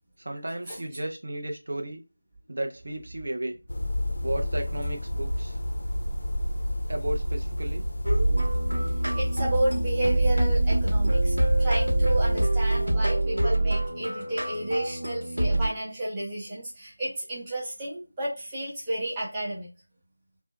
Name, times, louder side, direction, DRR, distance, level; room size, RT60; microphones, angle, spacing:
voice 1, 0.2-2.0 2.5-3.5 4.2-5.6 6.9-7.8, right 1 dB, 55° right, 0.6 m, -33 dB
sound 1, 3.7-12.9, left 1 dB, 55° left, 0.4 m, -32 dB
sound 2, 8.0-15.7, right 1 dB, 75° right, 1.1 m, -24 dB
voice 2, 9.1-19.7, right 1 dB, 10° right, 0.8 m, -31 dB
2.7 x 2.1 x 2.2 m
figure-of-eight pair, 170°, 0 cm